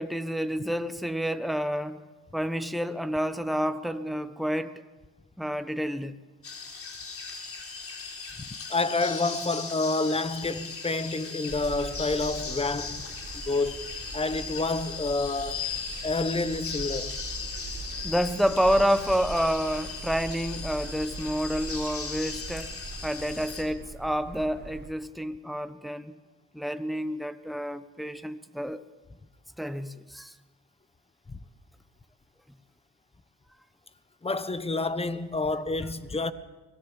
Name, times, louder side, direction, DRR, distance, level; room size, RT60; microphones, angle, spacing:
voice 1, 0.0-2.0 2.3-4.8 5.4-6.1 18.0-22.7 23.0-26.2 26.5-28.8 29.6-30.3, equal, ahead, 1.2 m, -29 dB
sound 1, 6.4-23.6, left 5 dB, 50° left, 3.9 m, -38 dB
voice 2, 8.7-13.1 13.3-13.8 14.1-15.7 16.0-17.2 31.3-31.4 34.2-36.3, left 3 dB, 20° left, 1.3 m, -28 dB
sound 2, 11.5-24.9, right 4 dB, 35° right, 4.4 m, -42 dB
25.0 x 18.0 x 7.3 m
cardioid pair, 90°, 30 cm